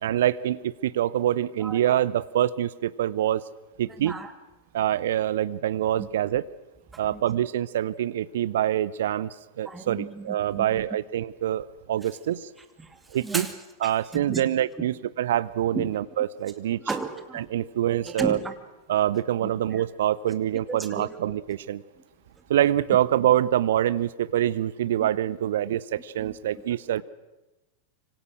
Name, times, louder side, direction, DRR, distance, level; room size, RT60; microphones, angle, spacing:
voice 1, 0.0-3.4 3.8-4.2 4.7-6.4 7.0-12.5 13.1-13.5 13.8-16.8 17.3-18.4 18.9-21.8 22.5-27.0, right 11 dB, 60° right, 18 dB, 0.7 m, -25 dB
voice 2, 4.0-4.3 6.0-6.1 7.0-7.2 9.7-10.8 12.8-13.5 13.8-14.4 15.7-15.9 16.7-17.5 18.0-18.5 19.4-19.5 20.7-21.1 25.0-25.1 26.2-26.4, right 3 dB, 10° right, 7 dB, 2.5 m, -34 dB
25.5 x 25.5 x 6.3 m, 1.0 s
figure-of-eight pair, 90°, 0 cm